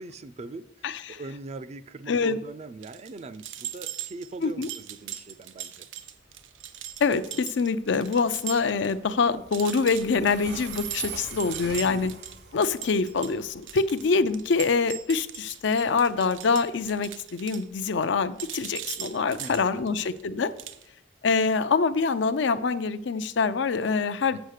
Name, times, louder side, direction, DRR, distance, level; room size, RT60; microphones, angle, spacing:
voice 1, 0.0-5.9 11.6-12.1 19.4-19.8 24.3-24.4, right 2 dB, 35° right, 13 dB, 0.4 m, -41 dB
voice 2, 0.8-1.2 2.1-2.4 4.4-4.7 7.0-12.1 12.5-20.5 21.2-24.4, left 4 dB, 70° left, 12 dB, 0.5 m, -25 dB
sound 1, 2.8-8.9 9.2-9.3 9.5-18.1 18.4-20.2 20.6-20.8, right 11 dB, 80° right, 0.6 m, -39 dB
Train, 6.0-20.8, right 6 dB, 60° right, 1.0 m, -44 dB
7.9 x 5.6 x 6.5 m, 0.80 s
head